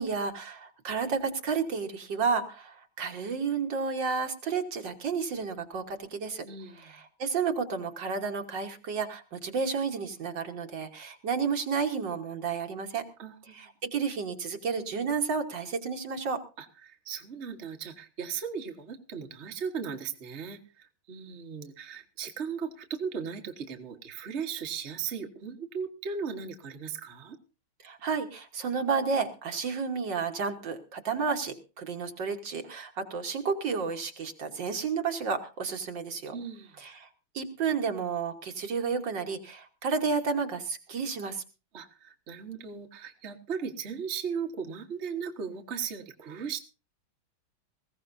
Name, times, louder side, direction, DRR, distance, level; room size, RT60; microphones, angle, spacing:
voice 1, 0.0-6.5 6.8-13.0 13.5-16.4 27.8-36.4 36.8-37.1 37.3-41.4, right 5 dB, 60° right, 5 dB, 2.0 m, -31 dB
voice 2, 6.4-6.9 13.2-13.6 16.6-27.4 36.3-36.8 41.7-46.6, right 6 dB, 35° right, 4 dB, 1.5 m, -37 dB
20.0 x 16.0 x 2.7 m, 0.32 s
omnidirectional pair, 2.3 m